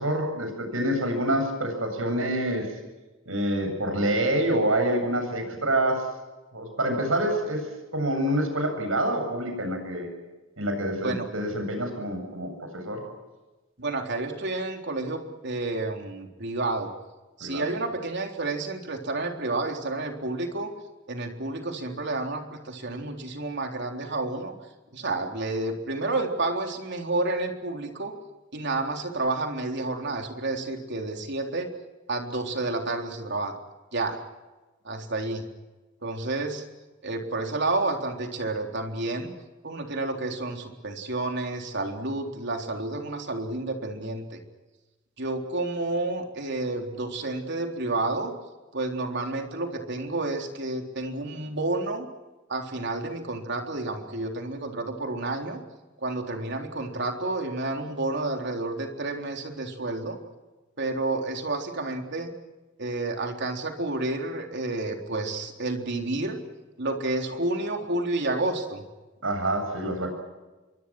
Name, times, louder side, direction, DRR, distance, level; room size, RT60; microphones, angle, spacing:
voice 1, 0.0-2.7 3.3-6.1 6.5-10.1 10.6-13.0 17.4-17.7 69.2-70.1, right 1 dB, 80° right, 5 dB, 8.0 m, -27 dB
voice 2, 13.8-16.9 17.4-20.7 21.1-24.5 24.9-28.1 28.5-31.7 32.1-33.5 33.9-34.2 34.8-35.4 36.0-36.6 37.0-39.3 39.6-44.4 45.2-48.3 48.7-52.1 52.5-55.6 56.0-60.2 60.8-62.3 62.8-66.4 66.8-68.8, right 2 dB, 60° right, 3 dB, 3.8 m, -30 dB
28.0 x 23.5 x 6.2 m, 1.2 s
head